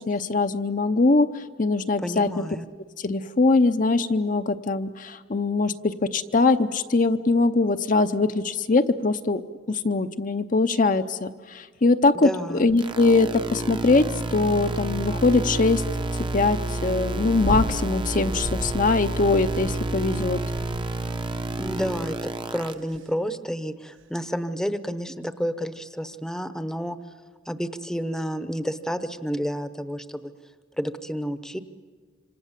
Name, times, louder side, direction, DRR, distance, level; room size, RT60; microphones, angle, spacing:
voice 1, 0.0-2.4 3.0-9.4 9.7-15.8 16.3-20.4, left 3 dB, 45° left, 8 dB, 0.7 m, -22 dB
voice 2, 2.0-2.6 12.2-12.7 21.6-27.0 27.5-30.3 30.8-31.6, equal, 5° left, 11 dB, 0.9 m, -30 dB
sound 1, 12.8-22.7, right 2 dB, 25° right, 0.8 m, -29 dB
sound 2, 17.4-17.8 18.3-18.9 19.4-20.0 20.5-21.0 21.6-22.0 22.7-23.0 24.0-24.1, equal, 85° right, 1.6 m, -34 dB
27.0 x 26.0 x 7.4 m, 1.5 s
head